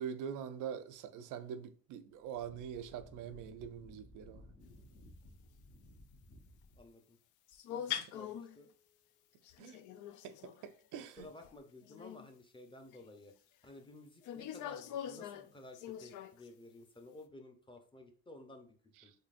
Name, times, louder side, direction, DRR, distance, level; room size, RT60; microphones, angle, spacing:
voice 1, 0.0-4.5 9.6-9.8 10.2-11.3, right 8 dB, 85° right, 0.5 m, -44 dB
Wind, 2.1-6.9, left 1 dB, 65° left, 1.2 m, -58 dB
voice 2, 6.8-7.2 7.7-8.7 11.2-13.3 13.6-19.1, left 2 dB, 15° left, 0.7 m, -54 dB
sound 1, 7.5-8.6 9.4-10.7 11.2-11.6 11.8-12.3 12.9-13.0 14.2-16.5, left 10 dB, 80° left, 0.5 m, -43 dB
3.8 x 3.3 x 2.5 m
cardioid pair, 90°, 30 cm